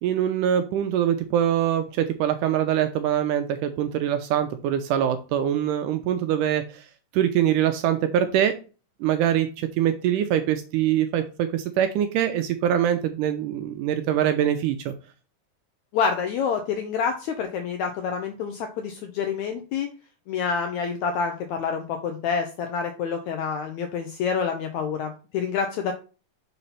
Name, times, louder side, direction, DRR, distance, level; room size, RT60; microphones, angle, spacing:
voice 1, 0.0-6.8 7.1-8.5 9.0-14.9, right 10 dB, 80° right, 8 dB, 1.9 m, -23 dB
voice 2, 15.9-19.9 20.3-25.9, left 6 dB, 80° left, 5 dB, 1.7 m, -27 dB
5.8 x 4.2 x 5.4 m, 0.35 s
omnidirectional pair, 4.1 m